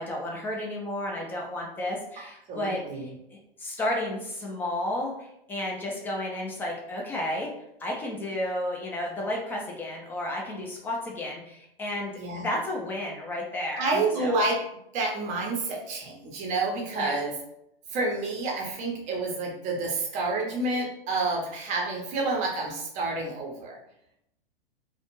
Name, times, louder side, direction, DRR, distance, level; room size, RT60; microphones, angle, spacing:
voice 1, 0.0-7.5 7.8-14.4 17.0-17.2, left 1 dB, 5° left, -2 dB, 0.4 m, -32 dB
voice 2, 2.5-3.1 12.2-12.4 13.8-14.6 14.9-17.3 17.9-23.8, right 3 dB, 25° right, 0 dB, 0.7 m, -29 dB
2.4 x 2.2 x 3.0 m, 0.79 s
hypercardioid pair, 115°, 29 cm